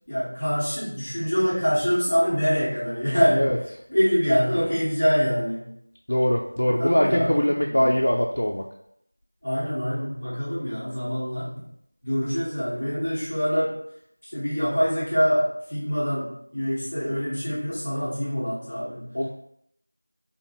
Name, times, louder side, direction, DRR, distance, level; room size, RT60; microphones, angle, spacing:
voice 1, 0.1-3.5 3.9-5.7 6.8-8.0 9.4-11.5 12.0-13.8 14.3-19.1, equal, 15° left, -11 dB, 0.7 m, -25 dB
voice 2, 6.1-8.6 19.1-19.3, equal, 40° left, -1 dB, 0.3 m, -22 dB
4.9 x 2.2 x 3.2 m, 0.73 s
figure-of-eight pair, 180°, 0 cm